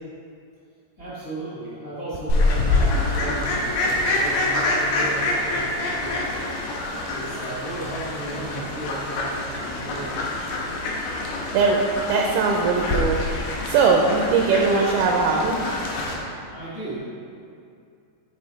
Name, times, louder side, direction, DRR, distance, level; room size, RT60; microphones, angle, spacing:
voice 1, 1.0-6.6 7.1-10.2 16.5-17.0, right 2 dB, 55° left, -11 dB, 0.7 m, -35 dB
Fowl, 2.3-16.1, left 2 dB, 85° left, 2.4 m, -26 dB
voice 2, 12.1-13.2 13.6-15.6, right 4 dB, 80° right, 0 dB, 1.9 m, -20 dB
8.7 x 3.3 x 3.9 m, 2.4 s
omnidirectional pair, 3.9 m